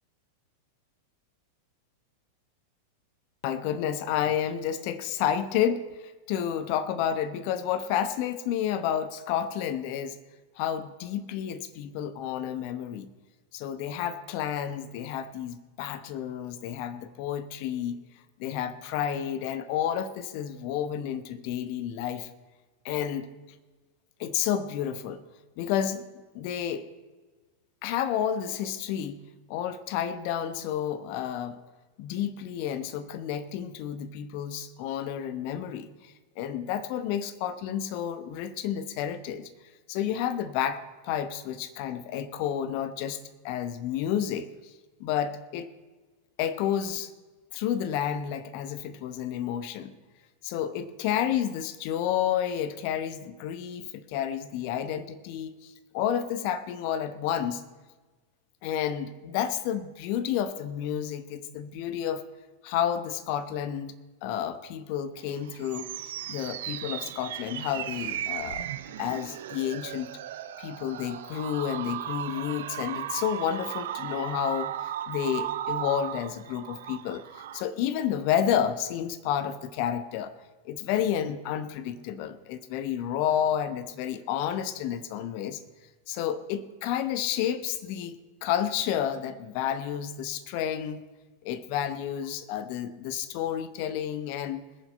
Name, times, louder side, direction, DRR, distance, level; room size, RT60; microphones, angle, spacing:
voice 1, 3.4-10.2 10.6-13.1 13.5-18.0 18.4-22.3 22.8-23.3 24.2-25.2 25.6-26.0 26.3-26.9 27.8-29.2 29.5-31.6 32.0-39.5 39.9-43.2 43.4-44.7 45.0-45.7 46.4-47.1 47.5-49.9 50.4-57.6 58.6-62.2 62.6-63.9 64.2-65.9 66.3-68.7 69.0-70.2 70.6-80.3 80.6-85.6 86.1-91.0 91.4-94.6, left 9 dB, 45° left, 12 dB, 1.0 m, -30 dB
sound 1, 65.2-77.6, right 11 dB, 55° right, 0.7 m, -36 dB
20.0 x 7.3 x 5.3 m, 1.3 s
figure-of-eight pair, 90°, 0 cm